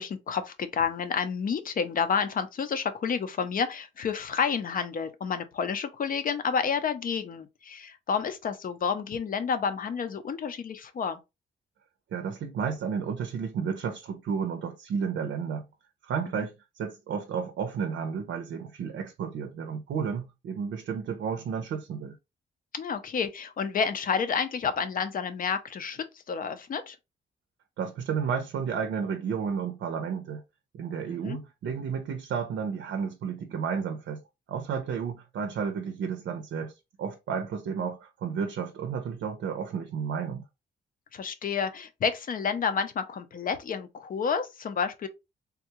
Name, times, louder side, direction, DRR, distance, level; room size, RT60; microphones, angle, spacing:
voice 1, 0.0-11.2 16.3-16.5 22.7-27.0 31.1-31.4 41.1-45.1, left 6 dB, 45° left, 0.5 m, -30 dB
voice 2, 12.1-15.7 16.0-22.2 27.8-30.4 30.7-34.2 34.5-36.7 37.0-40.4, right 6 dB, 80° right, 0.6 m, -32 dB
3.5 x 2.3 x 2.8 m
wide cardioid pair, 150°, 19 cm